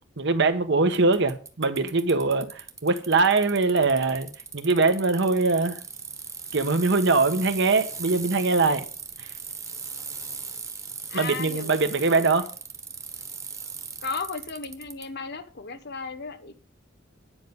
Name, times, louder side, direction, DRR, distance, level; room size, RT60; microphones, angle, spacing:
voice 1, 0.2-4.3 4.5-5.8 6.5-8.9 9.2-9.3 11.1-12.5, right 3 dB, 65° right, 1.2 m, -22 dB
Bicycle, 0.9-15.1, right 5 dB, 15° right, 1.2 m, -38 dB
voice 2, 11.1-12.3 14.0-16.6, left 4 dB, 60° left, 1.2 m, -35 dB
10.0 x 5.5 x 7.2 m
head